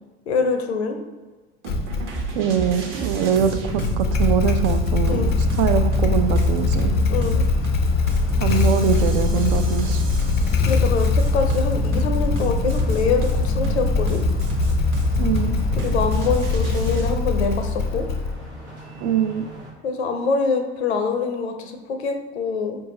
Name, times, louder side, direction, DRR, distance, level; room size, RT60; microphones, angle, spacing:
voice 1, 0.3-1.0 5.1-5.4 7.1-7.5 10.7-14.2 15.8-18.0 19.8-22.8, left 4 dB, 85° left, 5 dB, 0.6 m, -24 dB
sound 1, 1.6-17.1, right 3 dB, 40° right, 0.9 m, -27 dB
Motorcycle / Engine starting, 1.7-2.3 3.7-18.6, left 5 dB, 35° left, 0.4 m, -23 dB
voice 2, 2.3-6.9 8.4-10.0 15.2-15.6 19.0-19.4, right 8 dB, 60° right, 9 dB, 0.5 m, -23 dB
sound 2, 5.0-19.7, right 1 dB, 85° right, 1.1 m, -41 dB
4.6 x 2.7 x 2.8 m, 1.3 s
hypercardioid pair, 70°, 32 cm